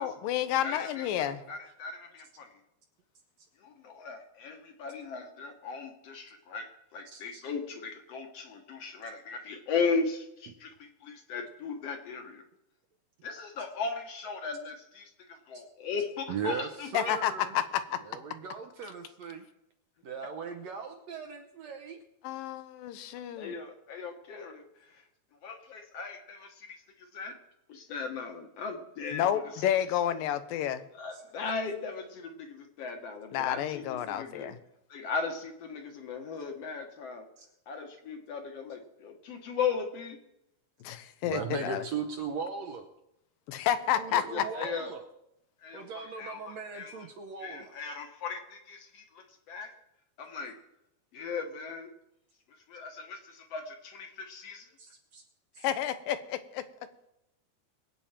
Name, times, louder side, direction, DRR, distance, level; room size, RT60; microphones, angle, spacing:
voice 1, 0.0-1.4 16.9-18.0 22.2-23.5 29.1-30.8 33.3-34.6 40.8-41.8 43.5-44.4 55.6-56.6, left 11 dB, 85° left, 11 dB, 2.6 m, -30 dB
voice 2, 0.6-2.6 3.6-12.4 13.2-16.9 23.4-25.0 25.4-27.4 27.7-29.7 30.9-34.5 34.9-37.3 37.7-40.2 44.1-44.9 45.6-47.1 47.4-49.7 50.2-50.6 51.1-51.9 52.7-54.7, left 5 dB, 60° left, 4 dB, 2.0 m, -37 dB
voice 3, 7.1-7.4 16.3-17.5 18.0-19.4 20.0-22.0 37.4-37.5 41.2-42.9 44.0-45.0 45.7-47.8 54.8-55.2, right 6 dB, 70° right, 5 dB, 1.7 m, -38 dB
22.0 x 8.7 x 4.4 m, 0.83 s
omnidirectional pair, 3.9 m